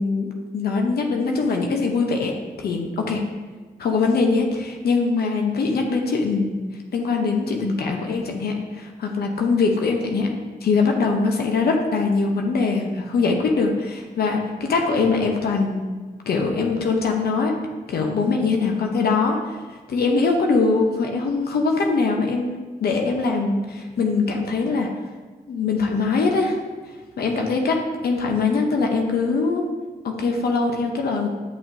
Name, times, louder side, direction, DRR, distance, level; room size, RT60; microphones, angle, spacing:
voice 1, 0.0-3.2 3.8-6.6 6.9-15.9 16.3-17.6 17.9-19.6 19.9-24.9 25.5-26.6 27.2-29.7 30.0-31.3, left 4 dB, 90° left, 2 dB, 0.8 m, -22 dB
8.9 x 6.2 x 2.7 m, 1.4 s
cardioid pair, 65°, 16 cm